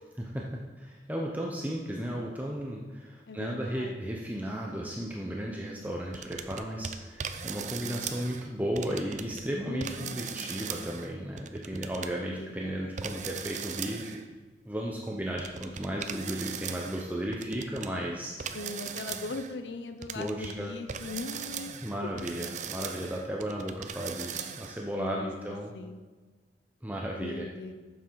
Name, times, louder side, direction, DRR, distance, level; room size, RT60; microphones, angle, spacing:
voice 1, 0.3-14.2 14.7-18.3 20.1-20.7 21.8-25.7 26.8-27.5, equal, 10° right, -2 dB, 0.7 m, -35 dB
voice 2, 3.3-4.2 9.6-10.3 12.3-12.9 18.5-21.8 25.0-26.0 27.2-27.7, left 2 dB, 75° left, 8 dB, 0.6 m, -40 dB
sound 1, 6.1-8.5 8.8-9.4 9.8-12.1 13.0-14.2 15.4-17.9 18.4-19.5 20.0-20.6 20.9-24.8, right 7 dB, 45° right, 0.5 m, -39 dB
9.2 x 7.3 x 4.7 m, 1.3 s
head